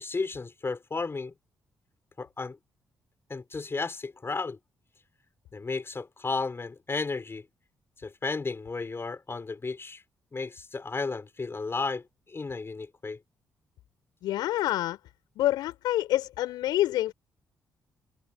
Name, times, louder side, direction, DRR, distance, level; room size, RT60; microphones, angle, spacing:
voice 1, 0.0-1.3 2.2-2.6 3.3-4.6 5.5-7.4 8.0-10.0 10.3-13.2, left 4 dB, 35° left, 5.5 m, -33 dB
voice 2, 14.2-15.0 15.3-17.1, left 14 dB, 70° left, 6.5 m, -27 dB
hypercardioid pair, 40°, 7 cm